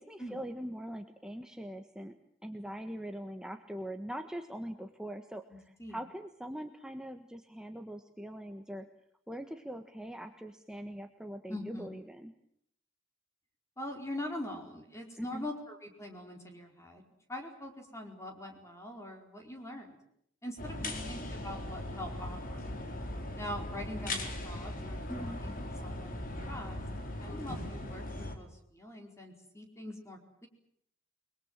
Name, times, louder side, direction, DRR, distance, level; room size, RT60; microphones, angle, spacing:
voice 1, 0.0-2.1 2.4-8.9 9.3-12.3 15.2-15.5 20.8-21.1 25.1-25.4, equal, 5° right, 5 dB, 1.5 m, -42 dB
voice 2, 5.5-6.0 11.5-11.9 13.8-17.0 17.3-20.0 20.4-22.7 23.4-25.5 25.8-26.8 27.2-30.5, left 1 dB, 15° left, 3 dB, 4.6 m, -43 dB
sound 1, 20.6-28.4, left 1 dB, 45° left, 4.4 m, -39 dB
29.0 x 22.0 x 7.5 m, 0.71 s
head